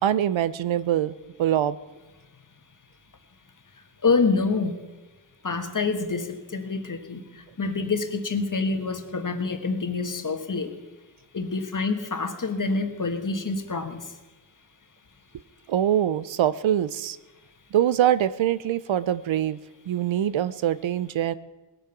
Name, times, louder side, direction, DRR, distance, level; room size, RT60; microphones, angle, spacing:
voice 1, 0.0-1.8 15.7-17.2 17.7-19.6 19.9-21.3, right 11 dB, 90° right, 16 dB, 0.7 m, -24 dB
voice 2, 4.0-4.8 5.4-10.7 11.3-14.0, left 4 dB, 45° left, 7 dB, 1.6 m, -27 dB
20.0 x 8.8 x 6.0 m, 1.2 s
wide cardioid pair, 85°, 45 cm